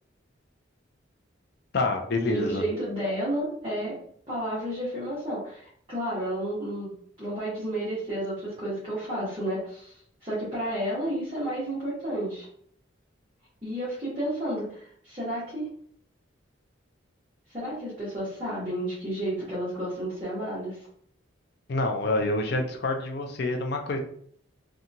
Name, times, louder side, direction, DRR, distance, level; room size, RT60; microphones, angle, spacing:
voice 1, 1.7-2.6 21.7-24.0, left 2 dB, 55° left, 4 dB, 0.4 m, -27 dB
voice 2, 2.3-3.9 4.3-6.9 7.2-9.9 10.2-12.5 13.6-15.7 17.5-20.9, right 1 dB, 25° right, -10 dB, 0.9 m, -31 dB
2.8 x 2.3 x 2.6 m, 0.63 s
head